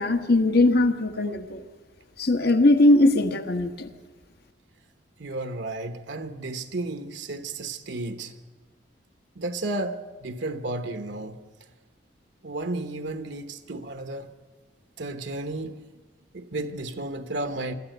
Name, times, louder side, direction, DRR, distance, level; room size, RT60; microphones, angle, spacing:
voice 1, 0.0-1.6 2.2-3.9, left 2 dB, 60° left, 1.4 m, -20 dB
voice 2, 5.2-8.3 9.4-11.4 12.4-14.3 15.0-15.8 16.3-17.8, right 2 dB, 70° right, 1.1 m, -33 dB
24.5 x 13.5 x 7.9 m
head